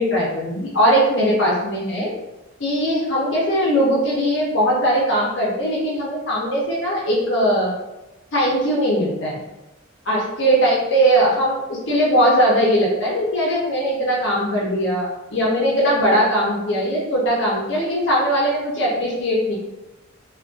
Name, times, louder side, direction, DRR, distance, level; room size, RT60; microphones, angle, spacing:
voice 1, 0.0-2.1 2.6-7.7 8.3-9.4 10.1-19.5, equal, 60° left, -5 dB, 0.5 m, -20 dB
2.4 x 2.1 x 2.4 m, 1.0 s
head